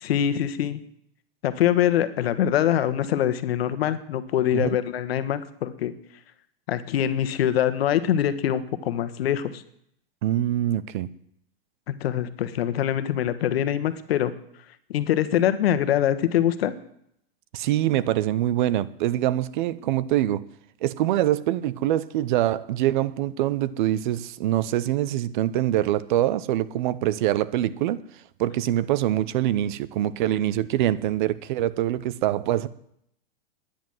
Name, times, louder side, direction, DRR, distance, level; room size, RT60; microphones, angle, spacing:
voice 1, 0.0-0.8 1.4-5.9 6.7-9.6 11.9-14.3 14.9-16.7, left 10 dB, 75° left, 1.4 m, -24 dB
voice 2, 10.2-11.1 17.5-20.4 20.8-28.0 28.4-32.7, right 13 dB, 50° right, 0.8 m, -24 dB
11.0 x 10.0 x 7.8 m
supercardioid pair, 155°, 31 cm